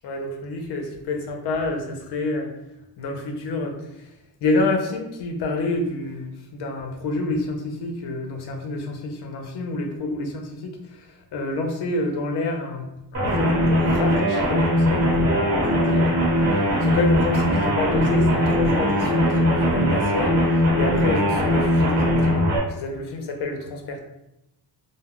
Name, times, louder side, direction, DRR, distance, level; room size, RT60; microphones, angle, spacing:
voice 1, 0.0-2.5 3.0-4.1 4.4-16.1 16.8-20.4 20.8-24.0, left 2 dB, 65° left, 3 dB, 0.7 m, -28 dB
sound 1, 13.1-22.6, equal, 35° right, 1.0 m, -20 dB
2.2 x 2.1 x 3.5 m, 0.86 s
cardioid pair, 140°, 44 cm